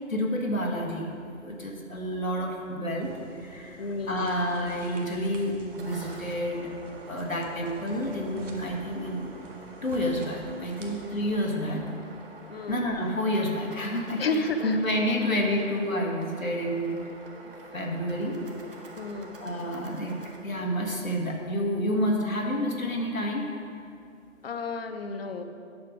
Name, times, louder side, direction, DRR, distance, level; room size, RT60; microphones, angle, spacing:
voice 1, 0.1-3.1 3.4-6.7 7.1-9.3 9.8-11.8 12.7-17.0 17.7-18.4 19.4-23.5, equal, 85° left, 0 dB, 1.7 m, -29 dB
sound 1, 3.0-11.5, right 1 dB, 65° right, 1.6 m, -48 dB
voice 2, 3.8-4.4 12.5-12.8 14.2-14.8 19.0-19.4 24.4-25.4, left 3 dB, 50° left, 8 dB, 0.7 m, -31 dB
sound 2, 5.7-20.4, right 2 dB, 45° right, 1.3 m, -48 dB
9.7 x 6.6 x 4.8 m, 2.5 s
figure-of-eight pair, 140°, 39 cm